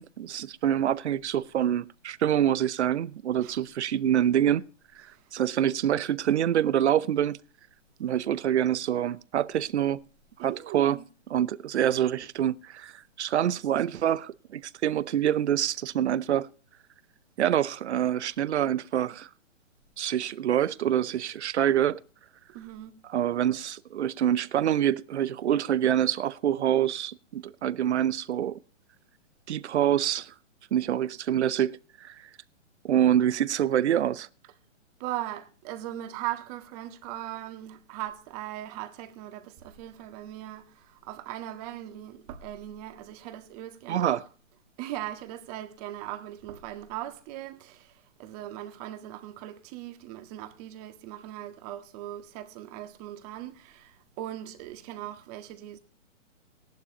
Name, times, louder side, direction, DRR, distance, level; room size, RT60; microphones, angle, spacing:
voice 1, 0.0-4.6 5.3-7.4 8.0-10.0 10.4-11.0 11.3-16.5 17.4-19.3 20.0-22.0 23.0-28.6 29.5-30.3 30.7-32.2 32.8-34.3 43.9-44.2, right 10 dB, 65° right, 0.7 m, -26 dB
voice 2, 10.4-11.0 22.5-22.9 35.0-44.2 44.8-47.9 48.2-55.8, right 13 dB, 30° right, 1.6 m, -39 dB
17.5 x 11.5 x 2.8 m
hypercardioid pair, 135°, 37 cm